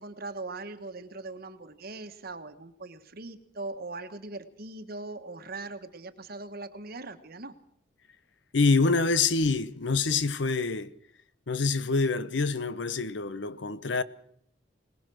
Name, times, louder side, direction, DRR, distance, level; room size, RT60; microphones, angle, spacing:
voice 1, 0.0-7.5, right 3 dB, 55° right, 1.3 m, -40 dB
voice 2, 8.5-10.9 11.5-14.0, left 4 dB, 70° left, 0.8 m, -26 dB
21.5 x 20.0 x 6.2 m
head